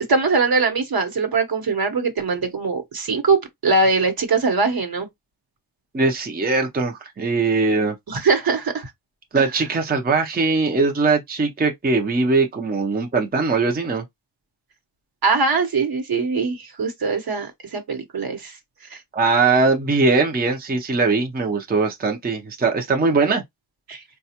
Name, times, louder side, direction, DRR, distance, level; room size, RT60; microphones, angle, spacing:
voice 1, 0.1-5.1 8.1-8.9 9.3-9.5 15.2-18.6 18.9-19.0 23.9-24.0, right 4 dB, 60° right, 1.1 m, -22 dB
voice 2, 5.9-7.9 9.3-14.0 19.1-23.4, right 3 dB, 20° right, 0.6 m, -20 dB
4.1 x 2.3 x 2.8 m
wide cardioid pair, 115°, 42 cm